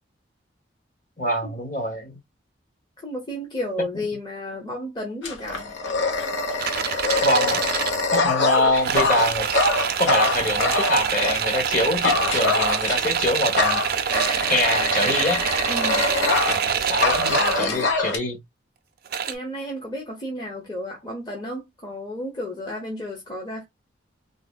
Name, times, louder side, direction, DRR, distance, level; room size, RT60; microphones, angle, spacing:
voice 1, 1.2-2.2 3.9-4.0 7.2-7.7 8.1-9.5 10.0-13.8 14.5-15.4 16.5-18.4, left 1 dB, 40° left, 1.3 m, -24 dB
voice 2, 3.0-5.7 15.7-16.1 19.3-23.6, left 1 dB, 20° left, 0.8 m, -32 dB
Dog, 5.2-11.4 12.0-13.2 13.6-16.7 17.0-18.2, left 3 dB, 70° left, 0.8 m, -24 dB
sound 1, 6.6-8.0 8.5-17.7 19.1-19.3, right 7 dB, 50° right, 0.4 m, -26 dB
3.9 x 2.0 x 2.3 m
head